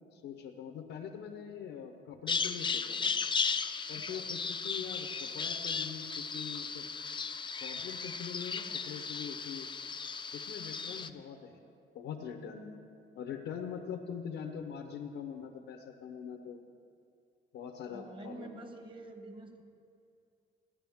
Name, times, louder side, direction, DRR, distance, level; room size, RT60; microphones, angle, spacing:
voice 1, 0.1-3.1 3.9-6.9 7.6-9.7 10.3-11.7 11.9-12.7 13.1-16.6 17.5-18.6, left 7 dB, 85° left, 3 dB, 0.8 m, -43 dB
Bird vocalization bird call bird song, 2.3-11.1, left 5 dB, 25° left, 0.4 m, -36 dB
voice 2, 4.0-4.3 17.9-19.6, right 2 dB, 25° right, 5 dB, 1.3 m, -48 dB
16.0 x 10.0 x 3.5 m, 2.4 s
cardioid pair, 90°, 20 cm